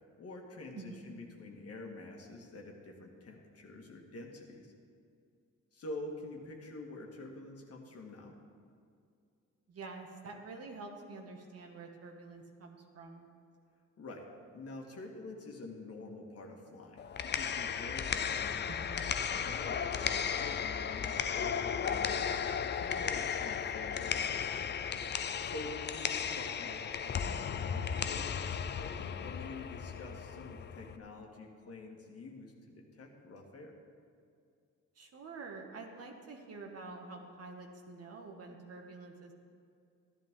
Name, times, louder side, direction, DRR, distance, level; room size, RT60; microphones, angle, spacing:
voice 1, 0.2-4.7 5.7-8.4 14.0-14.3 14.5-18.6 19.3-24.5 25.4-33.8, left 2 dB, 50° left, 1 dB, 1.8 m, -47 dB
voice 2, 9.7-13.3 18.7-19.2 34.9-39.3, right 3 dB, 55° right, 2 dB, 1.6 m, -47 dB
sound 1, 17.0-31.0, left 7 dB, 35° left, 0.5 m, -35 dB
13.5 x 11.0 x 3.7 m, 2.4 s
cardioid pair, 90°, 30 cm